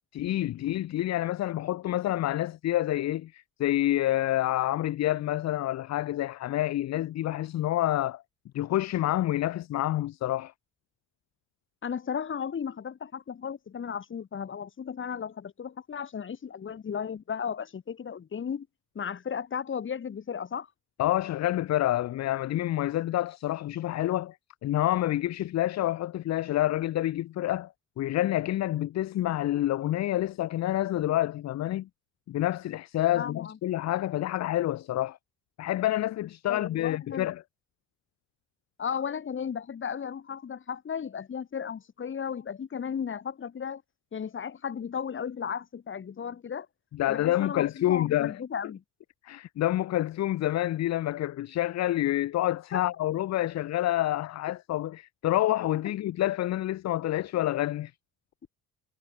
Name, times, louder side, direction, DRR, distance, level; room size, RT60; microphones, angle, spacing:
voice 1, 0.1-8.2 8.5-10.5 21.0-24.4 24.6-31.9 32.3-35.2 35.6-37.4 46.9-48.4 49.2-57.9, left 14 dB, 60° left, 0.6 m, -28 dB
voice 2, 11.8-18.7 19.0-20.7 33.1-33.6 36.5-37.3 38.8-43.8 44.1-46.7 47.1-48.8 52.7-52.8 55.8-55.9, left 7 dB, 40° left, 1.7 m, -35 dB
cardioid pair, 90°, 30 cm